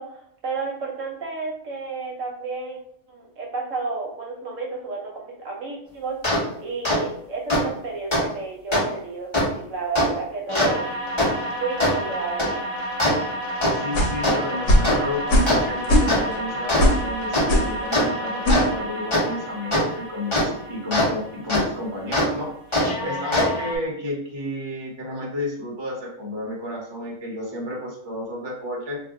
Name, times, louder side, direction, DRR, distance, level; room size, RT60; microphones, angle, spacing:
voice 1, 0.0-2.8 3.1-10.9 11.5-12.7, right 4 dB, 65° right, -1 dB, 1.0 m, -32 dB
sound 1, 6.2-6.4 6.8-7.0 7.5-7.6 8.1-8.2 8.7-8.8 9.3-9.4 9.9-10.1 10.5-21.1 21.5-21.6 22.1-22.3 22.7-23.8, left 1 dB, 20° left, 1.0 m, -24 dB
voice 2, 13.7-29.0, left 1 dB, 25° right, -3 dB, 0.7 m, -32 dB
sound 2, 13.9-14.2 14.7-14.9 15.3-15.6 15.8-16.3 16.8-17.0 17.5-17.7 18.4-18.7, equal, 70° left, 1.1 m, -18 dB
2.6 x 2.5 x 3.6 m, 0.67 s
omnidirectional pair, 1.5 m